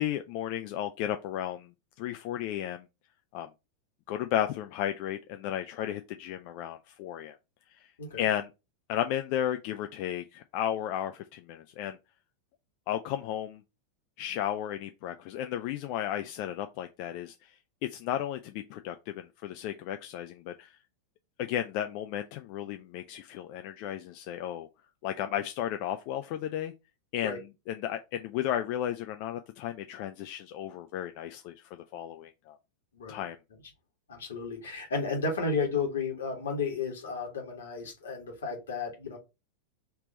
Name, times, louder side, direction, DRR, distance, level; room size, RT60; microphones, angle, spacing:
voice 1, 0.0-1.7 2.0-2.9 3.3-3.5 4.1-7.4 7.7-7.8 8.2-8.5 8.9-12.0 12.9-13.6 14.2-17.5 17.9-20.8 21.4-24.7 25.0-26.7 27.1-32.6 33.1-33.4, left 11 dB, 45° left, 0.3 m, -34 dB
voice 2, 32.9-33.2 34.1-39.2, left 4 dB, 65° left, 1.5 m, -33 dB
3.4 x 2.9 x 3.8 m
figure-of-eight pair, 90°, 0 cm